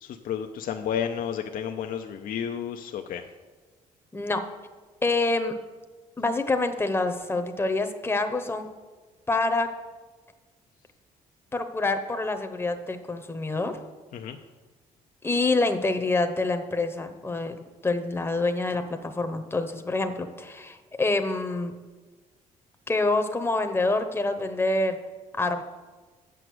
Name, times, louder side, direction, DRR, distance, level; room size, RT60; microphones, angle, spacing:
voice 1, 0.0-3.2 14.1-14.4, left 8 dB, 65° left, 5 dB, 0.6 m, -31 dB
voice 2, 4.1-4.5 5.0-5.5 6.2-8.7 9.3-9.7 11.5-13.8 15.2-17.5 17.8-21.7 22.9-25.0 25.4-25.6, left 2 dB, 15° left, 7 dB, 0.9 m, -26 dB
7.6 x 6.4 x 7.7 m, 1.3 s
cardioid pair, 80°, 15 cm